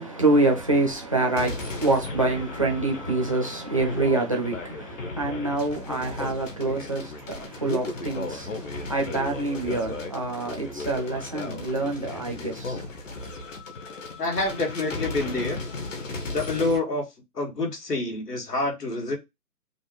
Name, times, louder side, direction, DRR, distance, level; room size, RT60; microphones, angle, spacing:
voice 1, 0.0-13.0, right 2 dB, 25° right, 0.5 m, -26 dB
sound 1, 1.4-16.8, left 2 dB, 55° left, 1.1 m, -35 dB
voice 2, 14.2-15.6 16.3-17.0 17.4-19.2, left 2 dB, 85° left, 1.9 m, -27 dB
5.2 x 2.1 x 3.1 m
hypercardioid pair, 155°, 47 cm